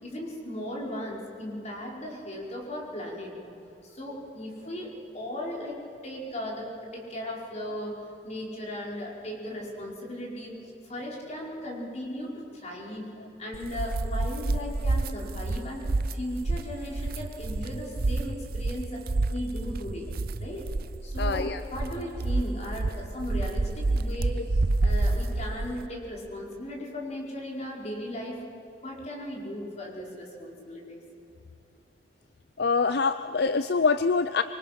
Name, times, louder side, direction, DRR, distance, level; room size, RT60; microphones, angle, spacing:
voice 1, 0.0-3.3 3.8-5.8 6.0-7.9 8.2-10.6 10.8-13.1 13.4-19.0 19.3-20.1 20.4-20.7 21.0-28.4 28.8-31.0, left 1 dB, 40° left, -2 dB, 4.9 m, -37 dB
sound 1, 13.5-25.9, right 2 dB, 60° right, 0.6 m, -29 dB
voice 2, 21.2-21.6 32.6-34.4, left 4 dB, 65° left, 11 dB, 0.6 m, -25 dB
25.5 x 24.0 x 6.0 m, 2.8 s
head